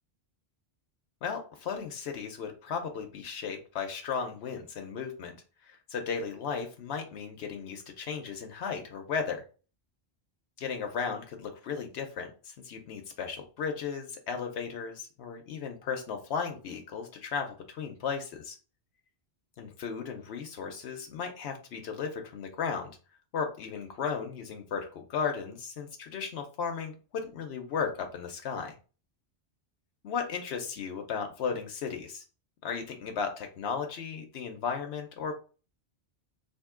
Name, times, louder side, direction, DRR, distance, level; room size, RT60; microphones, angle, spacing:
voice 1, 1.2-5.4 5.6-9.4 10.6-18.6 19.6-23.0 23.3-28.7 30.0-32.2 32.6-35.3, left 6 dB, 85° left, 4 dB, 0.9 m, -35 dB
3.6 x 2.6 x 3.6 m, 0.36 s
omnidirectional pair, 1.0 m